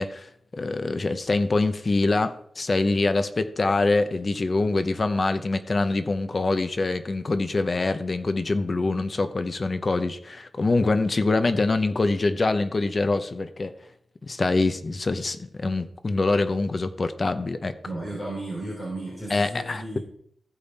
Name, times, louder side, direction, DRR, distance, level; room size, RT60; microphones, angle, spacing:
voice 1, 0.0-13.7 14.2-17.7 19.3-19.8, left 3 dB, 40° left, 10 dB, 0.7 m, -24 dB
voice 2, 17.8-20.0, right 1 dB, 20° left, -5 dB, 3.8 m, -34 dB
15.0 x 5.2 x 4.2 m, 0.69 s
wide cardioid pair, 100°, 0 cm